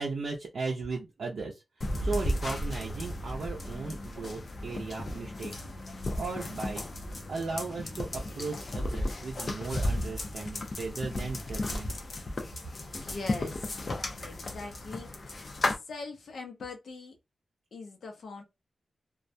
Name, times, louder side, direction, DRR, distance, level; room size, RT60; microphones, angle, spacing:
voice 1, 0.0-1.6 2.0-5.6 6.2-6.9 7.3-11.9, right 4 dB, 70° right, 0.5 m, -36 dB
sound 1, 1.8-15.8, left 1 dB, 40° left, 0.5 m, -34 dB
voice 2, 12.8-15.1 15.9-17.2 17.7-18.4, left 3 dB, 80° left, 0.7 m, -42 dB
2.3 x 2.1 x 2.6 m
wide cardioid pair, 165°, 0 cm